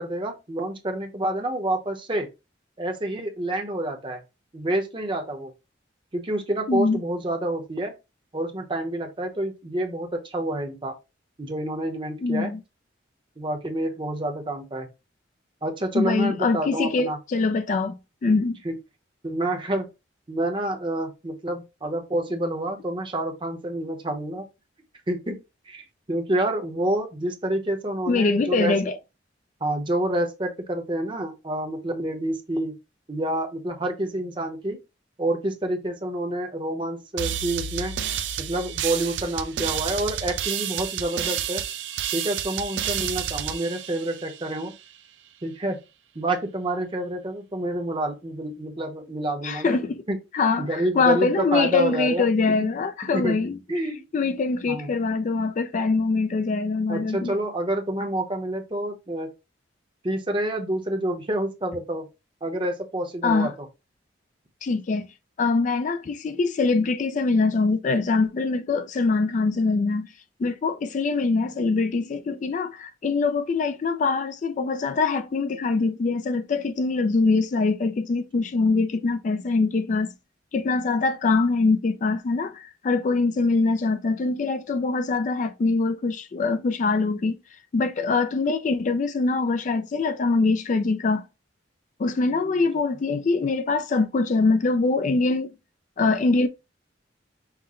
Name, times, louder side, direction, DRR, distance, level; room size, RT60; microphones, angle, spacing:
voice 1, 0.0-2.3 2.8-4.2 4.5-5.5 6.1-7.9 8.3-10.9 11.4-12.5 13.4-14.9 15.6-17.2 18.6-18.7 19.2-19.9 20.3-24.4 25.1-25.4 25.7-28.8 29.6-32.7 33.1-34.8 35.2-37.9 38.4-41.6 42.1-44.7 45.4-45.8 46.1-49.8 50.1-50.2 50.6-52.7 53.1-53.4 53.7-54.0 54.7-54.9 56.9-59.3 60.0-62.1 62.4-63.5 92.3-92.7, right 1 dB, 25° right, 0.8 m, -28 dB
voice 2, 6.7-7.0 12.2-12.6 15.9-18.6 28.1-29.0 49.4-50.0 50.3-53.6 54.1-57.3 63.2-63.5 64.6-65.1 65.4-70.1 70.4-80.1 80.5-87.4 87.7-91.2 92.0-95.5 96.0-96.5, left 3 dB, 40° left, 0.3 m, -23 dB
sound 1, 37.2-44.7, right 9 dB, 70° right, 0.4 m, -30 dB
5.8 x 2.1 x 3.6 m
head